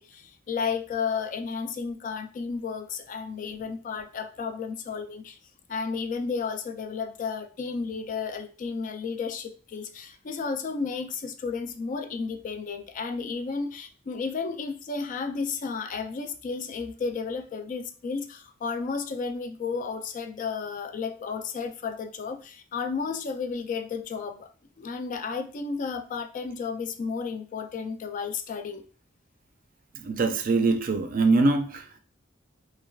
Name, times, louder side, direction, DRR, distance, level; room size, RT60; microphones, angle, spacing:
voice 1, 0.0-5.4 5.7-24.5 24.8-28.9, left 5 dB, 40° left, 7 dB, 0.3 m, -33 dB
voice 2, 29.9-32.0, right 3 dB, 45° right, 7 dB, 0.4 m, -23 dB
3.2 x 2.3 x 2.3 m, 0.39 s
head